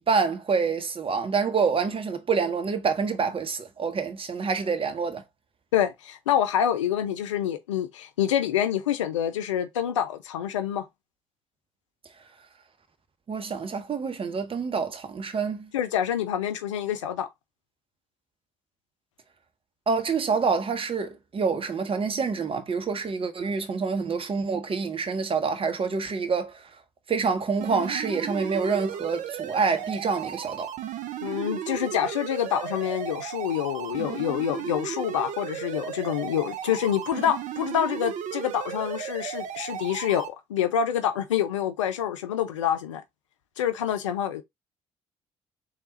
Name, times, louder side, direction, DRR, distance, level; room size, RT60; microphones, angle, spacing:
voice 1, 0.0-5.2 13.3-15.7 19.9-26.7 27.1-30.7, right 5 dB, 35° right, 0.9 m, -27 dB
voice 2, 5.7-10.9 15.7-17.3 31.2-43.0 43.6-44.4, left 10 dB, 85° left, 0.4 m, -27 dB
sound 1, 27.6-40.3, right 9 dB, 55° right, 0.5 m, -35 dB
3.4 x 2.3 x 4.0 m
figure-of-eight pair, 45°, 15 cm